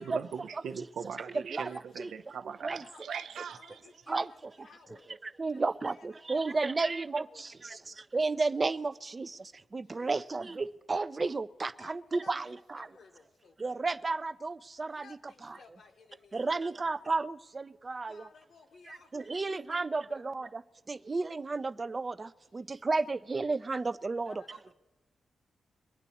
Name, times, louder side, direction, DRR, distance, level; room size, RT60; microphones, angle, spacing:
voice 1, 0.0-3.8 24.5-24.6, right 7 dB, 75° right, 0.5 m, -40 dB
voice 2, 1.1-2.1 2.8-3.0 3.5-5.1 5.5-6.9 7.2-8.0 9.8-10.3 11.8-13.7 14.9-16.8 18.1-20.2 22.6-22.8 24.2-24.7, left 4 dB, 55° left, 0.9 m, -57 dB
voice 3, 5.2-12.9 13.6-15.6 16.3-18.2 19.1-20.6 20.9-24.4, right 3 dB, 25° right, 0.4 m, -33 dB
23.0 x 10.5 x 4.2 m
wide cardioid pair, 175°, 0 cm